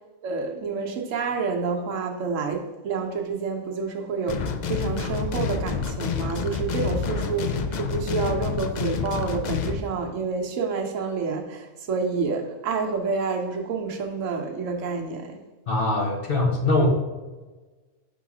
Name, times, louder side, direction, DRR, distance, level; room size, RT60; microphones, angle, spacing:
voice 1, 0.2-15.4, right 4 dB, 70° right, 1.1 m, -28 dB
sound 1, 4.3-9.8, left 5 dB, 80° left, 0.4 m, -28 dB
voice 2, 15.7-16.9, left 2 dB, 50° left, 1.0 m, -22 dB
5.5 x 3.8 x 4.8 m
omnidirectional pair, 1.4 m